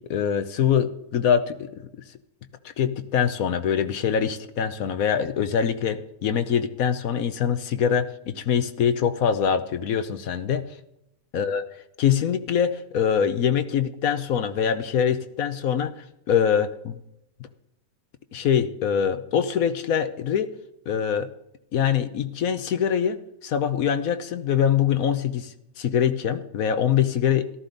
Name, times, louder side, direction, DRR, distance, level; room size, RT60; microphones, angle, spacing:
voice 1, 0.0-1.9 2.8-10.7 11.3-11.6 12.0-17.0 18.3-20.5 20.9-21.3 21.7-27.5, left 8 dB, 70° left, 10 dB, 1.2 m, -24 dB
14.0 x 13.0 x 4.0 m, 0.84 s
omnidirectional pair, 1.6 m